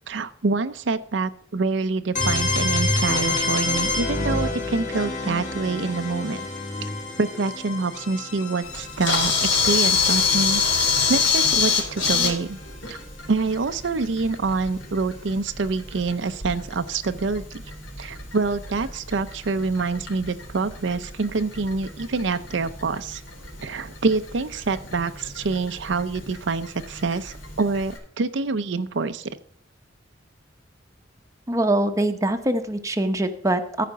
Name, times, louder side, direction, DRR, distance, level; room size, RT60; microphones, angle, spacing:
voice 1, 0.1-6.5 6.8-6.9 7.2-12.6 12.9-13.0 13.3-17.6 18.0-23.2 23.6-29.4, right 4 dB, 70° right, 10 dB, 0.6 m, -26 dB
sound 1, 2.2-11.9, left 2 dB, 40° left, 2.2 m, -28 dB
Camera, 8.6-28.0, left 5 dB, 85° left, 3.6 m, -28 dB
voice 2, 31.5-33.8, right 1 dB, 15° right, 6 dB, 0.8 m, -23 dB
14.0 x 5.1 x 5.6 m, 0.64 s
head